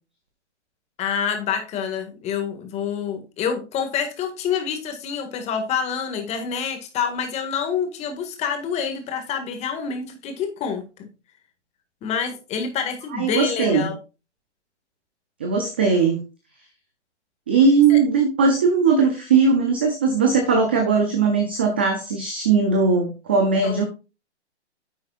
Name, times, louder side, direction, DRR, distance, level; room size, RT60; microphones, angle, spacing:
voice 1, 1.0-10.8 12.0-14.0 17.9-18.0 23.6-23.8, left 7 dB, 20° left, 6 dB, 1.9 m, -27 dB
voice 2, 13.1-13.9 15.4-16.2 17.5-23.8, right 4 dB, 10° right, 5 dB, 0.3 m, -19 dB
10.0 x 7.7 x 2.4 m, 0.30 s
hypercardioid pair, 140°, 35 cm